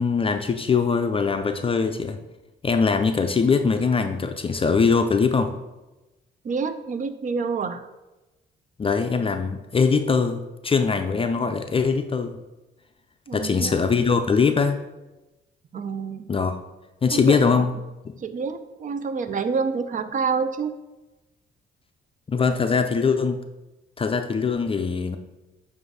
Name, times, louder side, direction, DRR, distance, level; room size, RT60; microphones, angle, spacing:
voice 1, 0.0-2.2 2.6-5.5 8.8-12.4 13.3-14.8 16.3-16.5 17.0-17.7 18.0-18.1 22.3-23.4 24.0-25.2, left 5 dB, 30° left, 6 dB, 0.4 m, -22 dB
voice 2, 6.4-7.9 13.3-13.7 15.7-16.3 17.1-17.6 18.2-20.7, right 5 dB, 40° right, 10 dB, 0.5 m, -28 dB
7.6 x 2.6 x 4.7 m, 1.0 s
cardioid pair, 90°, 20 cm